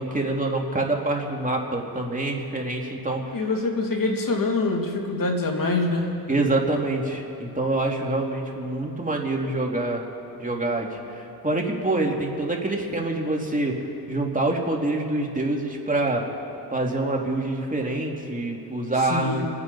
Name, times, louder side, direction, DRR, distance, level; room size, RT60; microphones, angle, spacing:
voice 1, 0.0-3.5 6.3-10.1 10.4-16.2 16.7-19.5, right 2 dB, 20° right, 0 dB, 2.6 m, -26 dB
voice 2, 3.3-6.1 19.1-19.5, left 3 dB, 55° left, 1 dB, 2.8 m, -25 dB
28.0 x 9.9 x 4.2 m, 2.9 s
cardioid pair, 65°, 40 cm